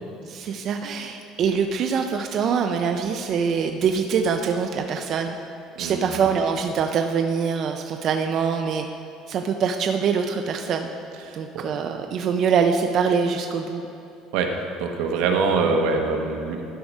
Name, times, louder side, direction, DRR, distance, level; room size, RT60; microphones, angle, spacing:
voice 1, 0.3-5.4 5.8-8.9 9.3-10.9 11.3-13.8, right 6 dB, 45° right, 5 dB, 0.4 m, -24 dB
voice 2, 5.8-6.2 11.3-11.6 14.3-14.5 14.8-16.6, right 4 dB, 85° right, 3 dB, 1.0 m, -24 dB
12.0 x 4.8 x 5.3 m, 2.8 s
cardioid pair, 150°, 0 cm